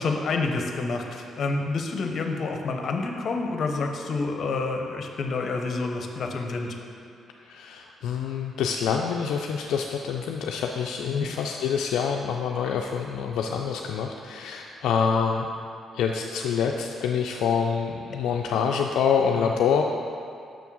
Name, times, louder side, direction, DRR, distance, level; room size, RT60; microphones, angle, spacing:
voice 1, 0.0-6.8 11.1-11.3 19.4-19.5, left 3 dB, 55° left, 3 dB, 0.7 m, -28 dB
voice 2, 7.4-15.5 15.9-19.8, left 6 dB, 80° left, 1 dB, 0.3 m, -26 dB
6.3 x 3.5 x 6.1 m, 2.5 s
cardioid pair, 90°, 0 cm